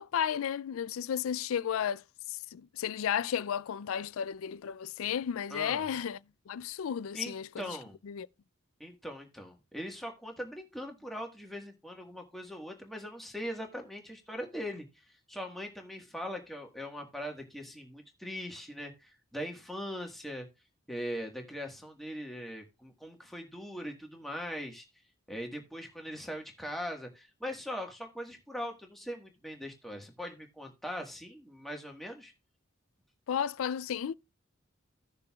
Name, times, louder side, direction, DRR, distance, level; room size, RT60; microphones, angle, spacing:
voice 1, 0.0-6.2 6.5-7.6 8.0-8.3 33.3-34.1, left 8 dB, 75° left, 0.4 m, -33 dB
voice 2, 5.5-5.8 7.1-8.0 8.8-20.5 20.9-24.9 25.3-32.3, equal, ahead, 1.5 m, -41 dB
16.0 x 6.7 x 2.3 m
head